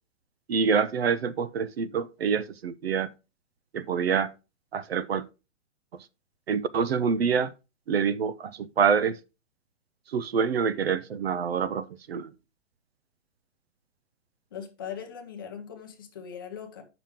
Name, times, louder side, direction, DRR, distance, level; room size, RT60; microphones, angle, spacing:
voice 1, 0.5-3.1 3.7-4.3 4.7-5.3 6.5-7.5 7.9-9.2 10.1-12.3, right 6 dB, 55° right, 0.5 m, -26 dB
voice 2, 14.5-16.8, left 8 dB, 20° left, 0.6 m, -40 dB
8.9 x 5.9 x 3.5 m
hypercardioid pair, 175°, 38 cm